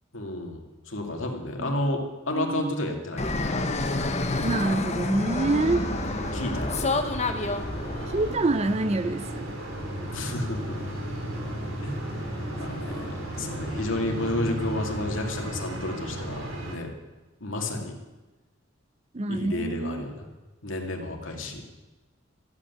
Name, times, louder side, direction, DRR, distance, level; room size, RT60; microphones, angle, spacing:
voice 1, 0.1-3.3 6.3-7.1 10.0-10.8 11.8-12.0 12.6-16.9 17.4-18.0 19.3-20.3 20.6-21.6, left 1 dB, 70° left, 2 dB, 2.5 m, -31 dB
voice 2, 2.3-2.7 4.4-5.9 8.1-9.5 19.1-20.1, right 2 dB, 35° right, 13 dB, 0.6 m, -26 dB
Fixed-wing aircraft airplane, 3.2-8.3, left 2 dB, 35° left, 1.2 m, -28 dB
sound 1, 5.4-16.8, right 1 dB, 75° right, 3.2 m, -34 dB
15.0 x 8.4 x 9.3 m, 1.1 s
head